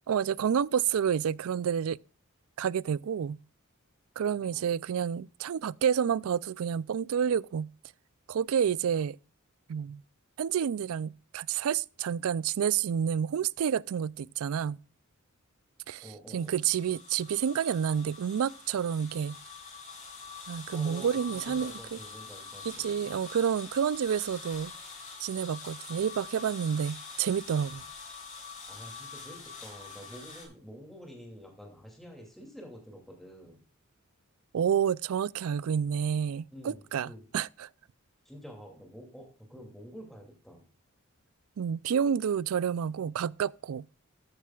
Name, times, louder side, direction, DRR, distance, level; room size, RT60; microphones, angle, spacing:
voice 1, 0.1-2.0 2.6-3.4 4.2-7.7 8.3-9.2 9.7-10.0 10.4-14.8 15.9-16.0 16.3-19.4 20.5-21.7 22.8-24.7 25.2-27.8 34.5-37.7 41.6-43.8, right 8 dB, 70° right, 0.4 m, -29 dB
voice 2, 16.0-16.6 20.7-23.3 28.7-33.6 36.5-37.2 38.2-40.6, equal, ahead, 2.5 m, -48 dB
sound 1, 16.3-30.5, left 4 dB, 40° left, 5.0 m, -45 dB
13.5 x 10.0 x 2.3 m
head